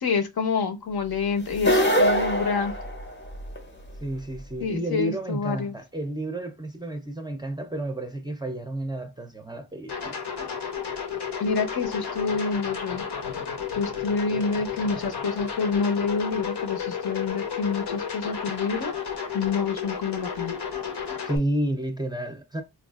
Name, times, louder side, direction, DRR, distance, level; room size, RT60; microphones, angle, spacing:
voice 1, 0.0-2.7 4.6-5.8 11.4-13.0 13.7-18.9 19.3-20.5, left 5 dB, 65° left, 0.7 m, -27 dB
sound 1, 1.5-3.6, equal, 30° left, 0.6 m, -23 dB
voice 2, 4.0-10.2 21.2-22.6, right 1 dB, 10° right, 0.5 m, -31 dB
sound 2, 9.9-21.4, left 7 dB, 90° left, 1.0 m, -32 dB
4.4 x 2.4 x 2.3 m
wide cardioid pair, 130°, 39 cm